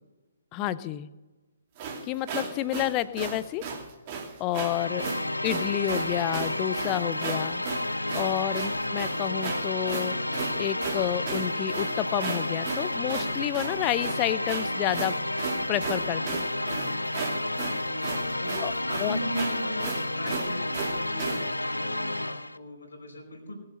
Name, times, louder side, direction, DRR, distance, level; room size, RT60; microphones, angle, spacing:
voice 1, 0.5-1.1 2.1-3.6 4.4-5.1 5.4-7.6 8.1-10.2 10.6-15.2 15.7-16.5 18.6-18.7 19.0-19.2, left 13 dB, 25° left, 16 dB, 0.6 m, -29 dB
sound 1, 1.8-21.5, right 5 dB, 30° right, 2.7 m, -36 dB
sound 2, 4.6-22.6, left 1 dB, 85° left, 0.6 m, -31 dB
voice 2, 8.4-8.9 16.5-23.5, equal, 70° left, 1 dB, 4.9 m, -39 dB
19.5 x 8.1 x 6.5 m, 1.1 s
figure-of-eight pair, 130°, 0 cm